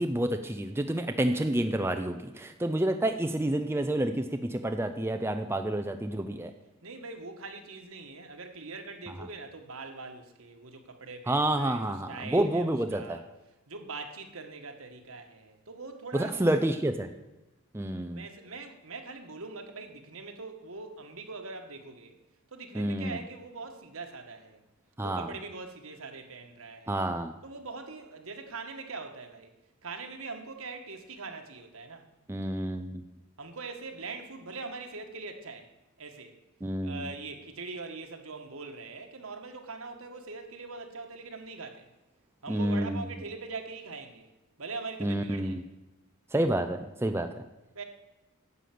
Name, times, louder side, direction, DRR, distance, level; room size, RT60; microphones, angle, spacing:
voice 1, 0.0-6.5 11.3-13.2 16.1-17.1 17.7-18.2 22.7-23.2 25.0-25.3 26.9-27.3 32.3-33.0 36.6-37.0 42.5-43.0 45.0-45.6 46.3-47.3, right 1 dB, 10° right, 6 dB, 0.6 m, -29 dB
voice 2, 6.2-6.5 6.8-13.2 13.7-16.6 17.8-22.2 22.5-24.6 25.0-27.1 27.4-29.5 29.8-32.1 33.4-35.7 36.0-36.3 36.8-41.9 42.4-44.3 44.6-45.6 47.7-47.8, right 3 dB, 65° right, 5 dB, 1.6 m, -42 dB
10.5 x 8.2 x 7.7 m, 0.98 s
head